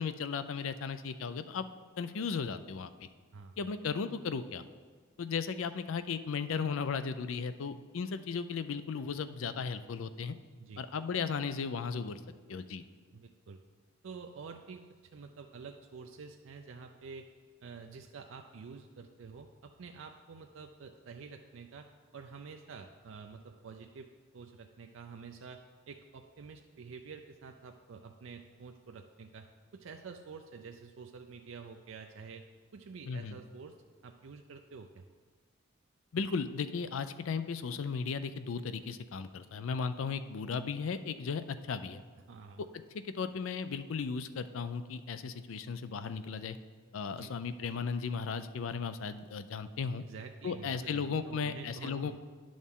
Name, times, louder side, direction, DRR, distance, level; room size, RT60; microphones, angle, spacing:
voice 1, 0.0-1.6 2.0-2.9 3.6-4.6 5.2-10.3 10.8-12.2 12.5-12.8 33.1-33.4 36.1-42.0 42.9-46.6 46.9-50.0 50.4-52.2, left 5 dB, 80° left, 12 dB, 0.4 m, -36 dB
voice 2, 13.1-13.6 14.0-14.8 15.1-17.3 17.6-21.9 22.1-24.1 24.3-25.6 25.9-29.5 29.7-32.5 32.7-33.8 34.0-35.0 42.3-42.6 47.1-47.3 50.0-52.2, right 5 dB, 75° right, 4 dB, 0.4 m, -48 dB
10.0 x 6.3 x 3.6 m, 1.5 s
head